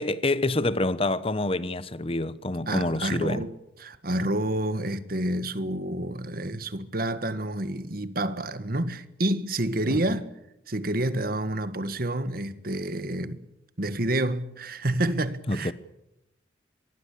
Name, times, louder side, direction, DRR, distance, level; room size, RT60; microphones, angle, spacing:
voice 1, 0.0-3.5 9.9-10.0 15.5-15.7, left 2 dB, 30° left, 1.0 m, -27 dB
voice 2, 2.7-3.5 3.8-10.3 10.7-13.4 13.8-15.7, right 1 dB, 55° right, 1.7 m, -29 dB
24.5 x 21.0 x 8.5 m
head